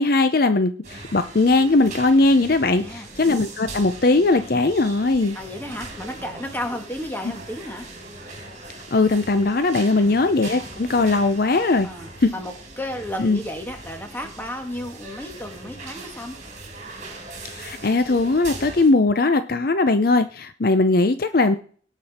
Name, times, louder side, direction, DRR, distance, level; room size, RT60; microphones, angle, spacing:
voice 1, 0.0-5.4 8.9-11.9 12.2-12.3 13.2-13.4 17.5-21.6, left 3 dB, 50° left, 11 dB, 0.6 m, -19 dB
sound 1, 0.8-18.9, right 2 dB, 40° right, 3.3 m, -40 dB
voice 2, 2.7-3.1 5.3-7.9 9.9-10.1 11.8-16.4, left 1 dB, 10° left, 4 dB, 1.9 m, -33 dB
18.0 x 6.1 x 4.3 m, 0.44 s
head